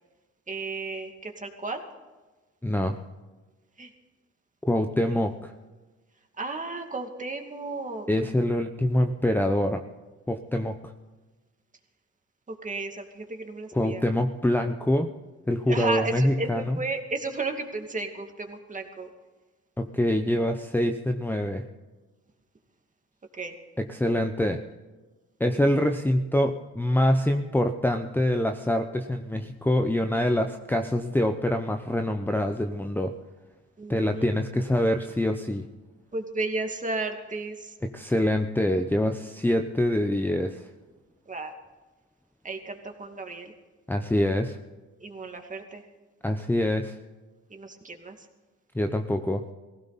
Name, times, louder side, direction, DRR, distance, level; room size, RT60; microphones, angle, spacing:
voice 1, 0.5-1.8 3.8-3.9 6.4-8.1 12.5-14.0 15.7-19.1 23.3-23.5 33.8-34.6 36.1-37.7 41.3-41.5 42.4-43.5 45.0-45.8 47.5-48.1, right 3 dB, 25° right, 4 dB, 2.5 m, -33 dB
voice 2, 2.6-3.0 4.7-5.5 8.1-9.8 10.3-10.9 13.7-15.1 15.5-16.8 19.8-21.6 23.8-24.6 25.4-33.2 33.9-35.7 37.8-40.7 43.9-44.6 46.2-46.9 48.7-49.4, left 1 dB, 5° left, 6 dB, 0.8 m, -25 dB
19.0 x 16.5 x 4.2 m, 1.2 s
cardioid pair, 85°, 30 cm